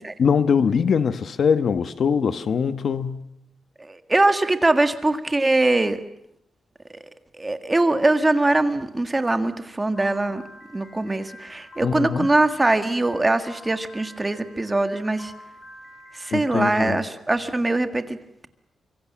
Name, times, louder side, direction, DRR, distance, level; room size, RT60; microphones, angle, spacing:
voice 1, 0.2-3.2 11.8-12.3 16.3-17.0, left 6 dB, 55° left, 1.1 m, -22 dB
voice 2, 3.8-6.0 7.4-10.4 10.7-15.3 16.1-18.2, right 2 dB, 15° right, 1.7 m, -22 dB
Piano, 10.0-16.9, left 1 dB, 30° left, 6.2 m, -47 dB
25.0 x 23.5 x 7.4 m
wide cardioid pair, 140°, 0 cm